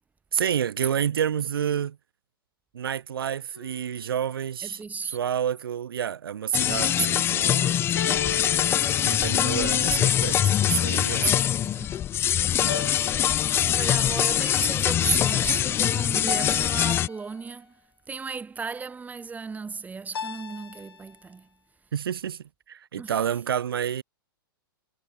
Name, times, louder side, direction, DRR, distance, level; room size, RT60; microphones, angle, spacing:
voice 1, 0.3-2.0 2.7-7.8 9.0-11.3 21.9-24.0, right 9 dB, 80° right, 2.6 m, -29 dB
sound 1, 3.5-4.2 7.9-10.0 12.7-14.1 16.3-17.5 20.1-21.1, left 6 dB, 90° left, 6.7 m, -37 dB
voice 2, 4.6-5.2 11.2-12.0 12.6-12.9 13.5-17.7 18.1-21.5 23.0-23.2, right 5 dB, 15° right, 4.1 m, -34 dB
sound 2, 6.5-17.1, left 11 dB, 20° left, 0.3 m, -23 dB
hypercardioid pair, 115°, 12 cm